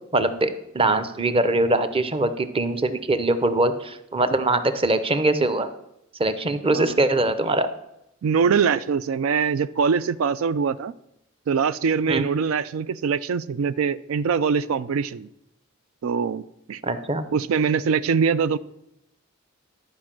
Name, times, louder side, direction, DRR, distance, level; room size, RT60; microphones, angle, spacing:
voice 1, 0.1-5.7 6.2-7.7 12.1-12.3 16.8-17.3, right 2 dB, 25° right, 11 dB, 0.7 m, -22 dB
voice 2, 8.2-10.9 11.5-15.3 16.0-16.8 17.3-18.6, right 6 dB, 85° right, 15 dB, 0.4 m, -23 dB
12.0 x 5.2 x 7.4 m, 0.83 s
head